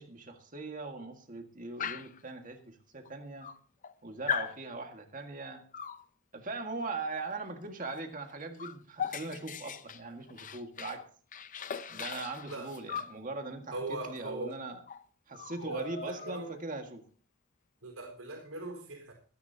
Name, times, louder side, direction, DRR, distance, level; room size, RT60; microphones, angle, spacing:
voice 1, 0.0-3.5 4.0-5.6 6.3-11.0 11.9-14.8 15.3-17.0, right 3 dB, 40° right, 4 dB, 1.8 m, -40 dB
Dog, 1.8-2.2 3.1-3.2 3.4-3.9 4.3-4.6 5.7-6.0 7.9-8.0 8.3-11.0 11.3-13.2 14.5-14.6 14.9-15.0 15.3-16.6, left 7 dB, 40° left, 0.6 m, -39 dB
voice 2, 13.7-14.5 15.6-16.5 17.8-19.1, right 2 dB, 75° right, 1 dB, 4.4 m, -40 dB
24.5 x 10.0 x 2.8 m, 0.43 s
head